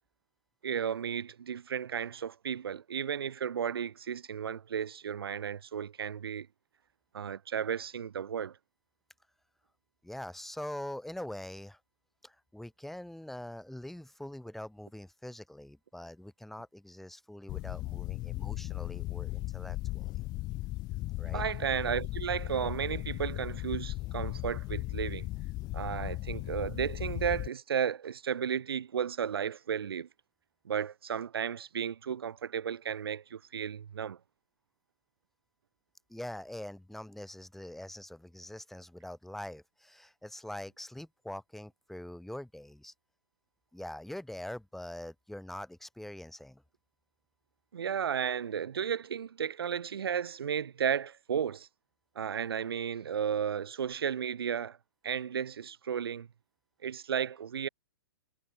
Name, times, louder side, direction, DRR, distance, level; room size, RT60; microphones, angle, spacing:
voice 1, 0.6-6.5 7.1-8.6 21.3-25.3 25.7-30.1 30.7-34.2 47.7-51.7 52.2-54.8 55.0-56.3 56.8-57.7, right 8 dB, 65° right, 2.0 m, -34 dB
voice 2, 10.0-11.8 12.2-20.2 21.2-21.4 36.1-42.9 43.7-46.6, left 1 dB, ahead, 6.3 m, -44 dB
sound 1, 17.5-27.5, left 19 dB, 30° left, 6.2 m, -37 dB
figure-of-eight pair, 115°, 13 cm